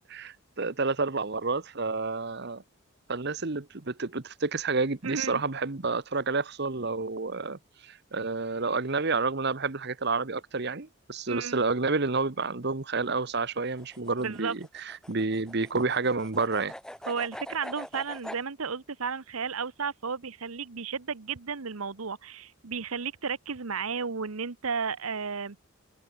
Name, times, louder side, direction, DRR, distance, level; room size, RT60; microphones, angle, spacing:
voice 1, 0.1-2.6 3.1-16.7, right 3 dB, 50° right, 1.1 m, -29 dB
voice 2, 5.0-5.4 11.3-11.6 14.2-14.6 17.1-25.6, right 5 dB, 85° right, 1.1 m, -33 dB
sound 1, 13.7-18.4, equal, 5° left, 2.2 m, -43 dB
head